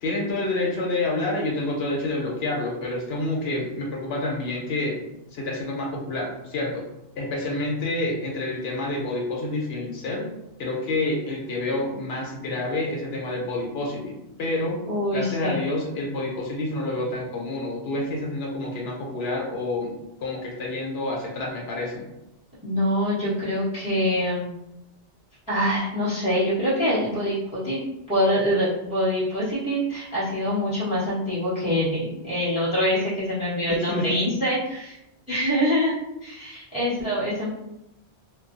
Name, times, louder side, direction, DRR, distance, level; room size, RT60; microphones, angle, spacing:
voice 1, 0.0-5.0 5.3-6.8 7.2-10.2 10.6-14.8 15.1-19.9 20.2-22.1 33.7-34.2, left 2 dB, 65° left, -1 dB, 0.9 m, -28 dB
voice 2, 14.9-15.6 22.6-24.5 25.5-27.8 28.1-35.0 35.3-35.9 36.2-37.5, equal, 5° right, -10 dB, 1.2 m, -25 dB
2.5 x 2.3 x 2.5 m, 0.87 s
omnidirectional pair, 1.2 m